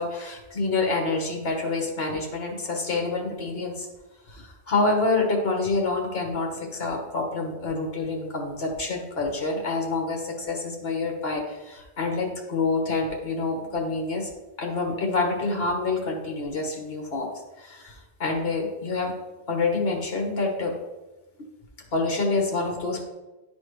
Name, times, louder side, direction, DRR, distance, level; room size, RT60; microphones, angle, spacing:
voice 1, 0.0-3.9 4.3-14.3 14.6-17.3 17.6-19.1 19.5-20.7 21.9-23.0, left 3 dB, 50° left, 1 dB, 1.5 m, -27 dB
10.0 x 4.1 x 3.2 m, 1.1 s
omnidirectional pair, 1.3 m